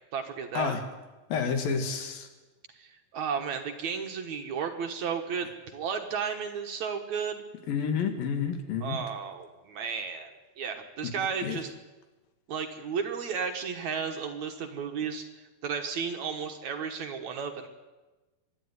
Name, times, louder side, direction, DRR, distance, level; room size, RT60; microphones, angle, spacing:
voice 1, 0.1-0.7 2.7-7.4 8.8-11.7 12.5-17.7, right 6 dB, 60° right, 4 dB, 2.3 m, -33 dB
voice 2, 1.3-2.3 7.7-9.0 11.0-11.1 11.4-11.6, left 6 dB, 75° left, 6 dB, 3.5 m, -29 dB
24.5 x 11.5 x 9.6 m, 1.2 s
omnidirectional pair, 4.2 m